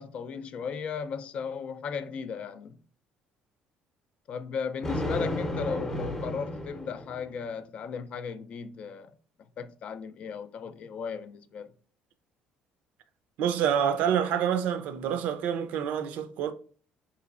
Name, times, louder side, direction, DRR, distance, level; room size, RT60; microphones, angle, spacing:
voice 1, 0.0-2.8 4.3-9.1 9.6-11.7, left 6 dB, 50° left, 0.4 m, -36 dB
Thunder, 4.8-7.4, left 1 dB, 15° left, 0.7 m, -33 dB
voice 2, 13.4-16.5, right 8 dB, 70° right, 0.5 m, -27 dB
3.8 x 3.0 x 2.4 m
cardioid pair, 120°, 3 cm